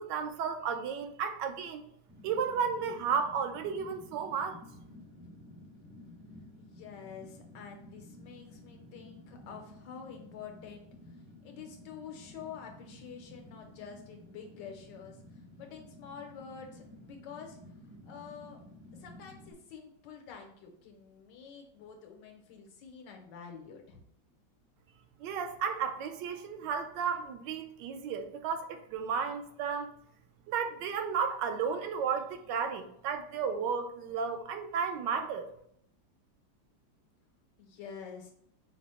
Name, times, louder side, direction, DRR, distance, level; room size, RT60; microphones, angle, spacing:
voice 1, 0.0-1.9 2.2-4.6 25.2-29.9 30.5-35.5, right 6 dB, 85° right, 7 dB, 1.2 m, -33 dB
Fire, 2.1-19.5, left 1 dB, 25° right, 0.4 m, -53 dB
voice 2, 6.6-10.9 11.4-15.2 15.6-17.6 18.1-18.6 18.9-24.0 37.6-38.3, left 6 dB, 90° left, 3 dB, 1.5 m, -48 dB
5.0 x 2.0 x 4.2 m, 0.69 s
omnidirectional pair, 1.9 m